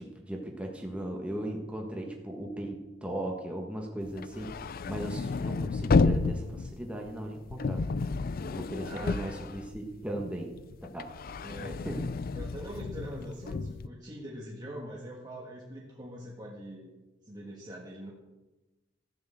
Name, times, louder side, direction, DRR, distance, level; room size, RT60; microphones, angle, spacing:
voice 1, 0.0-4.5 4.9-8.0 8.5-10.5 10.9-11.1 11.6-12.0, right 1 dB, 5° right, 0 dB, 1.5 m, -37 dB
sound 1, 4.1-10.2 10.6-13.9, left 4 dB, 50° left, 0.4 m, -31 dB
voice 2, 8.8-9.4 11.4-11.9 12.4-16.9 17.3-18.1, equal, 20° right, -3 dB, 1.7 m, -43 dB
13.5 x 6.8 x 7.9 m, 1.1 s
head